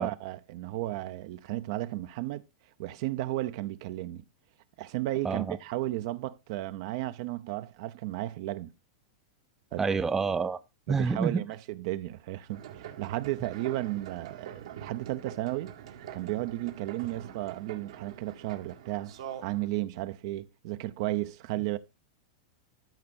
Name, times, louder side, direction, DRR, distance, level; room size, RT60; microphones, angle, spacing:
voice 1, 0.0-2.4 2.8-4.2 4.8-8.7 9.7-9.8 10.9-15.7 16.1-19.1 19.4-21.8, right 16 dB, 55° right, 0.6 m, -34 dB
voice 2, 5.2-5.6 9.8-10.6 10.9-11.4, right 5 dB, 15° right, 0.5 m, -28 dB
sound 1, 12.5-19.7, right 10 dB, 80° right, 1.9 m, -45 dB
13.0 x 5.3 x 4.2 m
hypercardioid pair, 135°, 3 cm